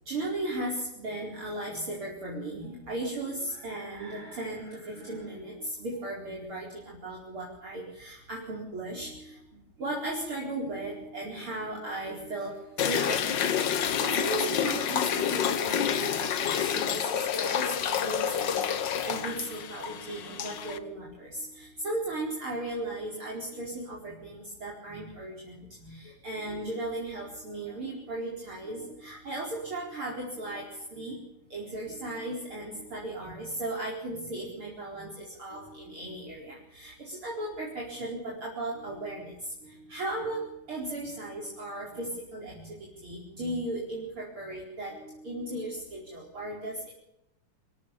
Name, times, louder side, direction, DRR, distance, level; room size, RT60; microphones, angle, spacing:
voice 1, 0.1-31.2 31.5-46.9, right 1 dB, 40° right, -3 dB, 5.3 m, -36 dB
sound 1, 12.8-20.8, left 8 dB, 70° left, 1.1 m, -29 dB
27.5 x 14.0 x 7.1 m, 0.81 s
omnidirectional pair, 3.7 m